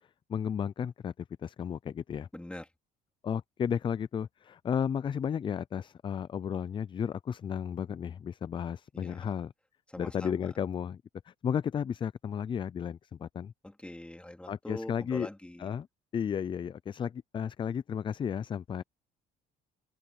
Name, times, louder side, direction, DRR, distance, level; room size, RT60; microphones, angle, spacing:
voice 1, 0.3-2.3 3.2-9.5 10.0-11.0 11.3-13.5 14.5-15.3 15.6-15.9 16.1-18.8, left 8 dB, 30° left, 0.4 m, -33 dB
voice 2, 2.3-2.7 8.9-9.2 9.9-10.5 13.6-15.7, left 1 dB, 5° left, 3.4 m, -43 dB
open air
cardioid pair, 110°, 17 cm